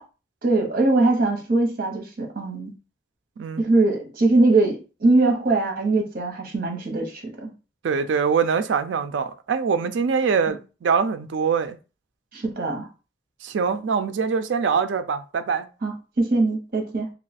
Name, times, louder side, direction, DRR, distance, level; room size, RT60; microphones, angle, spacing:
voice 1, 0.4-2.7 3.6-7.5 10.5-10.6 12.3-12.9 15.8-17.1, right 2 dB, 55° right, 0.9 m, -22 dB
voice 2, 7.8-11.8 13.4-15.7, right 6 dB, 75° right, 0.4 m, -23 dB
2.9 x 2.3 x 4.1 m
head